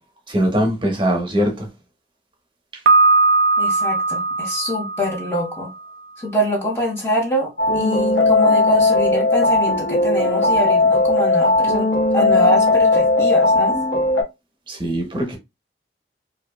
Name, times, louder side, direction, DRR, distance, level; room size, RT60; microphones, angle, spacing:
voice 1, 0.3-1.7 14.7-15.4, equal, 25° right, 0.7 m, -21 dB
Piano, 2.9-5.7, right 3 dB, 55° right, 0.3 m, -18 dB
voice 2, 3.6-5.7 6.2-11.9 12.1-13.8, equal, 15° left, 0.5 m, -24 dB
sound 1, 7.6-14.2, left 2 dB, 85° left, 0.7 m, -17 dB
2.6 x 2.5 x 2.2 m
head